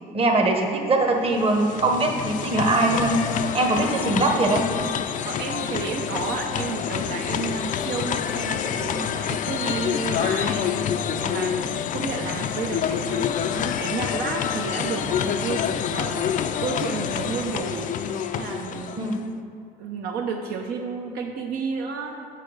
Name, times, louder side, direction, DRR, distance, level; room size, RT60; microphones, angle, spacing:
voice 1, 0.1-3.2 3.5-4.6 19.0-19.2, right 2 dB, 35° right, 2 dB, 1.1 m, -21 dB
sound 1, 1.2-19.3, left 8 dB, 50° left, 0.4 m, -27 dB
voice 2, 5.2-10.7 11.0-17.9 18.3-19.0 19.8-22.3, right 5 dB, 70° right, 1 dB, 0.8 m, -31 dB
6.8 x 6.8 x 4.9 m, 2.5 s
cardioid pair, 110°, 17 cm